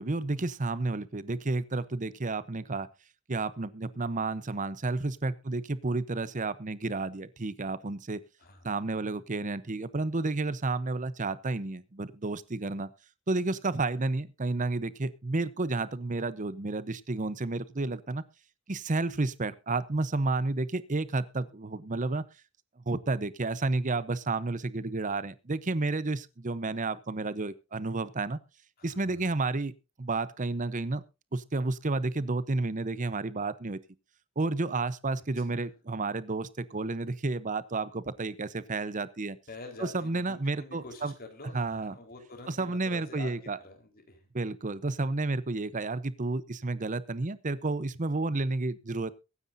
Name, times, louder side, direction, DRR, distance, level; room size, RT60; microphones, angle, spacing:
voice 1, 0.0-2.9 3.3-8.2 8.6-12.9 13.3-18.2 18.7-22.2 22.9-28.4 28.8-29.7 30.0-31.0 31.3-33.8 34.4-39.4 39.8-41.1 41.5-41.9 42.5-43.6 44.3-49.1, right 3 dB, 35° right, 0.8 m, -31 dB
voice 2, 8.4-8.7 28.8-29.3 35.4-35.6 39.5-44.3, left 2 dB, 45° left, 4.1 m, -47 dB
23.0 x 9.8 x 2.6 m
head